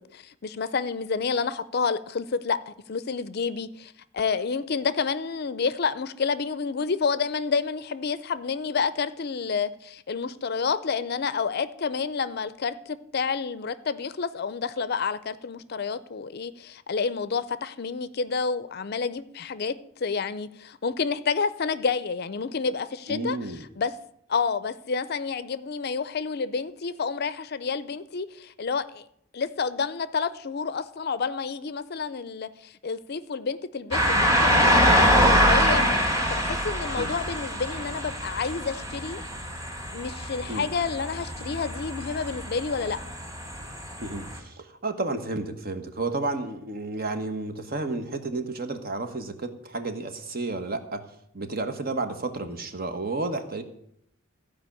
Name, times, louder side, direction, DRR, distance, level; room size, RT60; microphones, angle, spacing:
voice 1, 0.1-19.8 20.0-23.4 23.8-23.9 24.3-29.0 29.3-39.2 39.9-43.0, left 5 dB, 50° left, 0.5 m, -29 dB
voice 2, 23.1-23.7 37.0-37.1 40.5-40.7 44.0-51.0 51.3-53.6, right 2 dB, 45° right, 1.1 m, -31 dB
sound 1, 33.9-44.4, equal, 15° right, 2.1 m, -24 dB
14.0 x 5.1 x 8.4 m
head